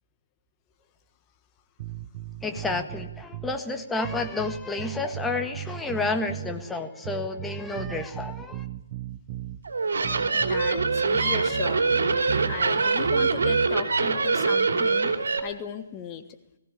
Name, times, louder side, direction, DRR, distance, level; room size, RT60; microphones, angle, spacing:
sound 1, 1.8-3.6 4.0-6.6 7.0-9.6 10.0-12.6 13.0-13.7, right 11 dB, 35° right, 0.8 m, -36 dB
voice 1, 2.4-8.7, left 3 dB, 5° left, 6 dB, 1.6 m, -30 dB
sound 2, 9.6-15.4, right 4 dB, 65° right, 3.2 m, -24 dB
voice 2, 10.3-12.1 12.5-15.1 15.4-16.2, left 8 dB, 20° left, 8 dB, 1.4 m, -36 dB
20.0 x 16.5 x 10.0 m, 1.0 s
figure-of-eight pair, 135°, 0 cm